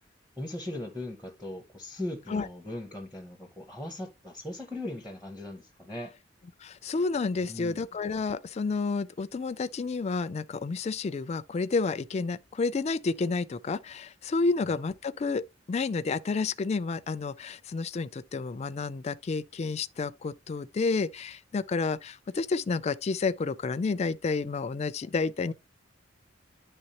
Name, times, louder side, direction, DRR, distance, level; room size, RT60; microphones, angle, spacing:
voice 1, 0.4-6.1 7.4-7.8 14.6-14.7, left 1 dB, 5° right, 0.7 m, -39 dB
voice 2, 6.6-25.5, left 4 dB, 35° left, 0.3 m, -30 dB
9.8 x 3.5 x 2.9 m
head